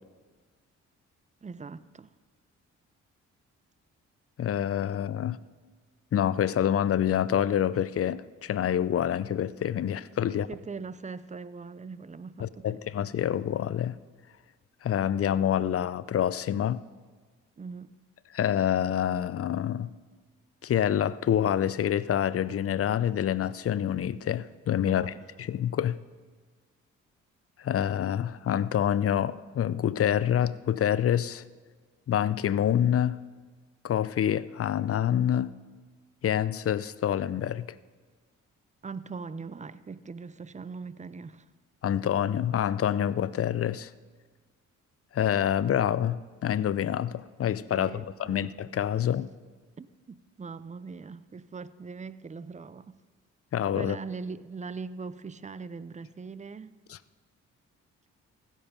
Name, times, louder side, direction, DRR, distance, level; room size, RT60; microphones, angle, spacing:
voice 1, 1.4-2.1 10.2-12.8 17.6-18.0 24.8-25.2 38.8-41.5 47.7-48.5 49.8-53.0 53.7-56.7, right 4 dB, 25° right, 0.5 m, -41 dB
voice 2, 4.4-5.4 6.1-10.5 12.4-14.0 14.8-16.8 18.3-19.9 20.6-25.1 25.4-26.0 27.6-31.4 32.1-33.2 33.8-35.5 36.2-37.7 41.8-43.9 45.1-49.3 53.5-54.0 56.9-57.0, left 10 dB, 45° left, 0.5 m, -27 dB
15.5 x 7.3 x 5.3 m
supercardioid pair, 55°, 32 cm